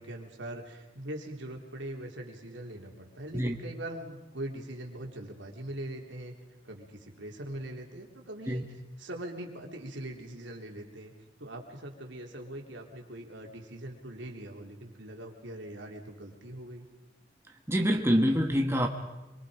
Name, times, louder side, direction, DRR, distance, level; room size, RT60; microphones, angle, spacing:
voice 1, 0.0-6.3 6.6-8.6 9.0-11.1 11.4-16.8, right 1 dB, 80° right, 1 dB, 3.3 m, -42 dB
voice 2, 17.7-18.9, equal, 15° right, 2 dB, 1.4 m, -25 dB
25.5 x 23.5 x 5.1 m, 1.1 s
head